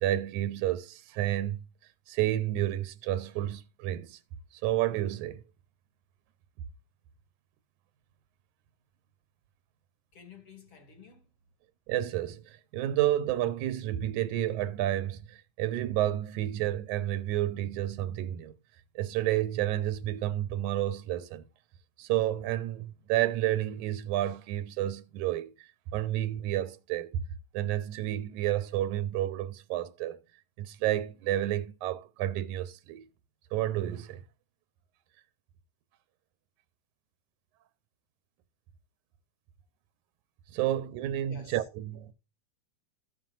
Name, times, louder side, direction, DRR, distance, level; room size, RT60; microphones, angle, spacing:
voice 1, 0.0-1.6 2.1-4.2 4.6-5.4 11.9-18.5 19.0-21.4 22.0-25.5 25.9-27.1 27.5-30.2 30.6-33.1 33.5-34.2 40.5-42.1, right 13 dB, 85° right, 2.2 m, -30 dB
voice 2, 10.1-11.3 41.3-41.7, left 5 dB, 45° left, 2.6 m, -52 dB
14.0 x 7.5 x 2.5 m
omnidirectional pair, 3.4 m